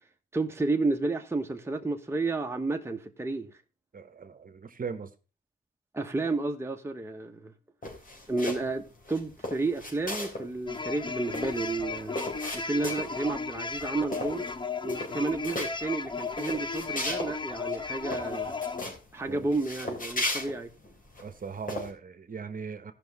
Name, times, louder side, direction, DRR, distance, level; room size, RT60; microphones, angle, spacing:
voice 1, 0.3-3.5 5.9-7.5 8.3-12.2 12.5-14.5 14.8-18.5 19.1-20.7, right 3 dB, 15° right, 1.0 m, -31 dB
voice 2, 3.9-5.1 19.3-19.5 21.2-22.9, right 5 dB, 45° right, 1.1 m, -39 dB
sound 1, 7.8-8.7 9.0-10.5 10.7-10.8 11.1-13.3 13.7-13.9 14.1-14.6 14.8-15.7 16.2-17.3 17.7-17.8 18.1-19.0 19.5-21.2 21.7-21.9, left 1 dB, 45° left, 3.4 m, -36 dB
sound 2, 10.7-18.8, left 5 dB, 25° left, 0.6 m, -35 dB
15.5 x 5.8 x 4.0 m
cardioid pair, 95°, 20 cm